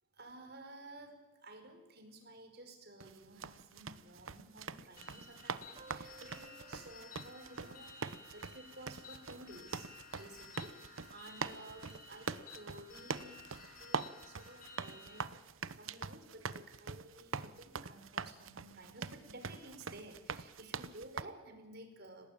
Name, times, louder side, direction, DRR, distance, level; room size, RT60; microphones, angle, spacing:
voice 1, 0.1-13.4 13.8-15.4 15.8-22.3, right 1 dB, 50° right, 6 dB, 5.0 m, -54 dB
sound 1, 3.0-21.2, right 5 dB, 75° right, 1.0 m, -44 dB
sound 2, 5.0-15.3, left 4 dB, 40° left, 6.4 m, -55 dB
sound 3, 5.8-8.9, right 3 dB, 30° right, 1.7 m, -60 dB
30.0 x 19.0 x 8.9 m, 1.2 s
head